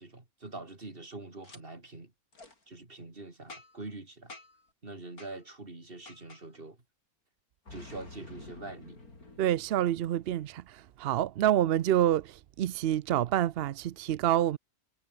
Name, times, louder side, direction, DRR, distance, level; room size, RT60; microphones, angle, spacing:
voice 1, 0.0-2.1 2.7-4.3 4.8-6.8 7.7-9.0, right 2 dB, 35° right, 3.6 m, -44 dB
Boom, 1.4-1.6 2.3-2.5 3.5-3.9 4.3-4.7 5.2-5.3 6.1-6.4 7.7-10.4, left 2 dB, 80° left, 5.5 m, -49 dB
voice 2, 9.4-14.6, right 12 dB, 65° right, 0.6 m, -27 dB
omnidirectional pair, 1.5 m